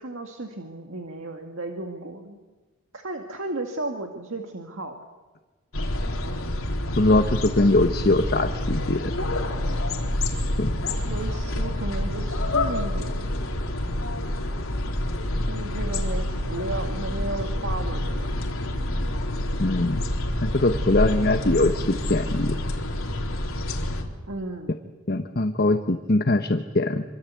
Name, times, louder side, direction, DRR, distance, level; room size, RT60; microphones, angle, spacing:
voice 1, 0.0-2.4 2.9-4.9 11.0-13.3 15.5-18.3 24.3-24.9, right 2 dB, 65° right, 3 dB, 2.1 m, -34 dB
sound 1, 5.7-24.0, left 1 dB, 70° left, 3.9 m, -27 dB
voice 2, 7.0-9.1 10.6-10.7 19.6-20.0 20.4-22.6 25.1-27.0, left 2 dB, 45° left, 6 dB, 1.1 m, -22 dB
27.0 x 24.5 x 8.3 m, 1.2 s
head